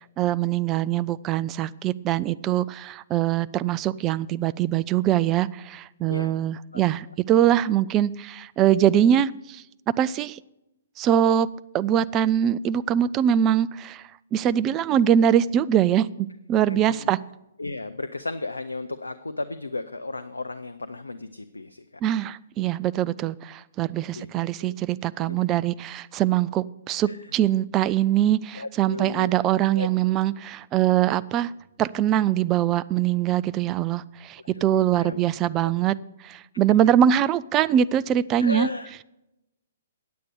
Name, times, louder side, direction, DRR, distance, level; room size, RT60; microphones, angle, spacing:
voice 1, 0.2-9.6 10.0-10.4 11.0-11.5 11.7-14.0 14.3-17.2 22.0-31.5 31.8-36.0 36.2-38.7, right 10 dB, 25° right, 16 dB, 0.3 m, -23 dB
voice 2, 16.7-17.1 17.6-21.8 24.1-24.3 24.6-24.8 25.2-25.4 27.0-27.2 28.6-29.3 29.8-29.9 34.5-35.2 35.6-35.8 38.4-39.0, left 2 dB, 80° left, 10 dB, 0.5 m, -34 dB
9.4 x 8.2 x 6.5 m, 0.89 s
figure-of-eight pair, 120°, 0 cm